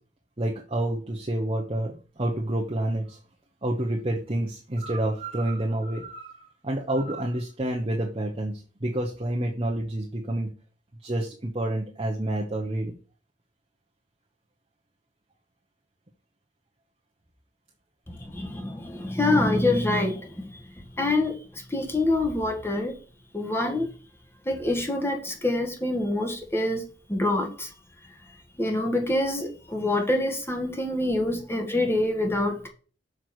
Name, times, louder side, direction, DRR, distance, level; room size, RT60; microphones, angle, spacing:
voice 1, 0.4-3.2 3.6-10.5 11.0-12.9 31.2-31.3, right 1 dB, 30° right, 1.1 m, -29 dB
voice 2, 18.1-20.6 21.0-23.0 23.3-23.9 24.4-26.8 27.1-27.7 28.6-32.7, left 2 dB, 15° left, 1.5 m, -26 dB
6.6 x 4.8 x 6.2 m
head